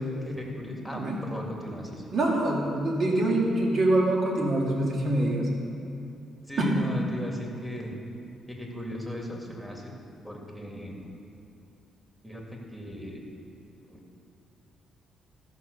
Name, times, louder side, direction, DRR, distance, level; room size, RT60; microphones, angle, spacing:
voice 1, 0.2-2.1 6.4-7.9 8.5-9.9 10.2-11.0 12.2-13.2 13.9-14.0, equal, 5° right, -1 dB, 2.2 m, -37 dB
voice 2, 2.1-5.4 6.6-6.7, right 1 dB, 55° right, -2 dB, 2.6 m, -25 dB
14.0 x 5.9 x 6.7 m, 2.8 s
cardioid pair, 90°, 0 cm